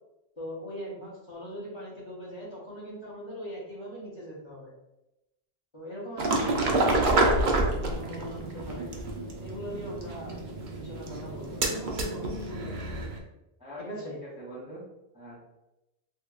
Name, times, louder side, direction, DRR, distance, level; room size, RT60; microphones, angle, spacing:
voice 1, 0.4-4.7 5.7-6.6 6.9-7.5 8.0-8.9 9.4-10.3 10.7-12.0 13.8-14.2, equal, 30° left, -7 dB, 0.8 m, -40 dB
sound 1, 6.2-13.2, right 2 dB, 55° right, 0.6 m, -28 dB
voice 2, 13.6-14.8 15.1-15.4, equal, 10° right, -7 dB, 0.5 m, -43 dB
2.8 x 2.8 x 2.3 m, 0.94 s
omnidirectional pair, 1.1 m